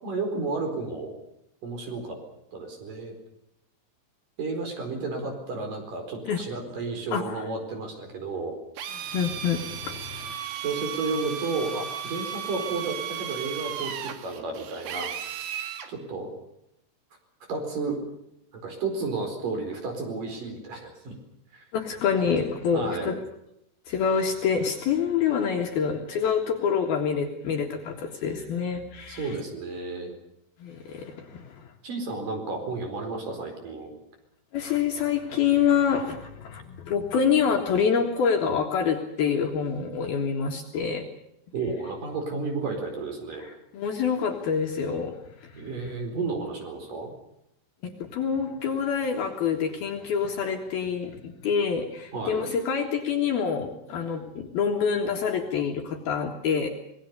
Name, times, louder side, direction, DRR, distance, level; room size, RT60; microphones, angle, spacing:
voice 1, 0.0-1.1 1.6-2.2 2.5-3.1 4.4-8.6 10.6-15.4 15.9-16.3 17.5-18.0 18.5-21.2 21.5-21.6 22.7-23.1 29.1-30.1 31.8-33.9 41.5-43.4 45.6-47.1 52.1-52.4, right 3 dB, 45° right, 4 dB, 5.8 m, -32 dB
voice 2, 7.1-7.4 9.1-10.3 21.7-23.2 23.9-29.4 30.6-31.7 34.5-41.1 43.4-45.6 47.8-56.7, left 6 dB, 60° left, 2 dB, 3.2 m, -27 dB
Drill, 8.8-15.9, right 9 dB, 65° right, 3.4 m, -35 dB
26.0 x 20.5 x 6.8 m, 0.80 s
omnidirectional pair, 5.6 m